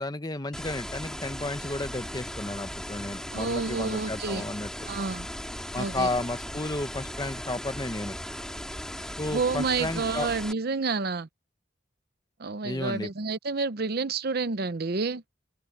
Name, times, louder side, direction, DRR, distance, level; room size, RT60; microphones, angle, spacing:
voice 1, 0.0-4.7 5.7-8.2 9.2-10.3 12.6-13.1, left 2 dB, 20° left, 1.0 m, -32 dB
sound 1, 0.5-10.5, equal, 5° left, 2.3 m, -37 dB
voice 2, 3.3-4.4 4.9-5.3 5.8-6.1 9.3-11.3 12.4-15.2, right 4 dB, 55° right, 0.7 m, -29 dB
open air
head